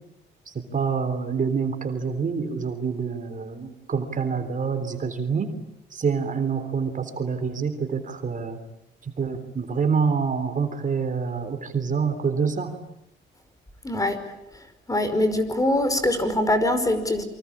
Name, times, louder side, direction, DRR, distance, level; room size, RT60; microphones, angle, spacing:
voice 1, 0.5-5.5 5.9-8.6 9.0-12.7, right 5 dB, 40° right, 8 dB, 3.5 m, -26 dB
voice 2, 13.8-14.2 14.9-17.2, left 1 dB, 15° left, 10 dB, 5.2 m, -23 dB
27.5 x 24.5 x 8.7 m, 0.81 s
cardioid pair, 90°, 20 cm